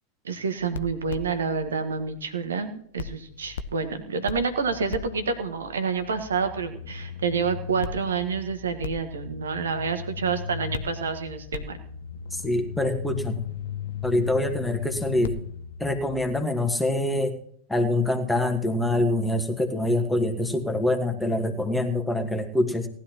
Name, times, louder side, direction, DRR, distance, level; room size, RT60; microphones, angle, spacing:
voice 1, 0.2-11.8, right 5 dB, 70° right, 8 dB, 1.6 m, -28 dB
sound 1, 0.6-2.6 3.0-16.4, left 7 dB, 60° left, 0.7 m, -37 dB
voice 2, 12.3-13.4 14.0-15.3 15.8-17.3 17.7-22.9, left 1 dB, 5° left, 5 dB, 1.6 m, -25 dB
18.5 x 11.5 x 3.0 m, 0.63 s
figure-of-eight pair, 90°, 0 cm